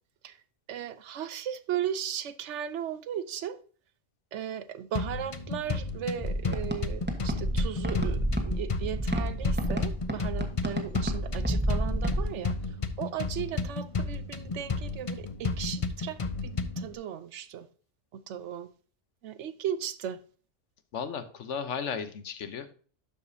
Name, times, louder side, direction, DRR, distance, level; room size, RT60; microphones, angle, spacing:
voice 1, 0.7-3.6 4.3-12.6 13.0-17.7 18.1-18.7 19.2-20.2, right 9 dB, 80° right, 1.0 m, -36 dB
sound 1, 4.9-16.9, left 4 dB, 35° left, 0.6 m, -33 dB
sound 2, 6.2-12.2, equal, 10° right, 1.1 m, -30 dB
voice 2, 20.9-22.7, left 6 dB, 80° left, 1.2 m, -35 dB
12.0 x 5.0 x 2.7 m
omnidirectional pair, 1.2 m